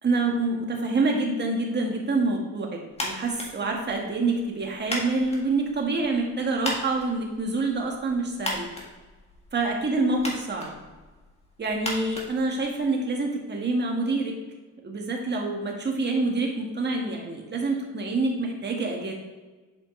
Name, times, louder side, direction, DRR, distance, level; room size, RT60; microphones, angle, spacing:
voice 1, 0.0-8.7 9.5-10.7 11.6-14.3 14.8-19.1, right 3 dB, 35° right, 1 dB, 1.5 m, -26 dB
sound 1, 2.9-13.1, left 1 dB, 20° left, 1.8 m, -38 dB
7.5 x 5.1 x 3.1 m, 1.3 s
cardioid pair, 90°, 30 cm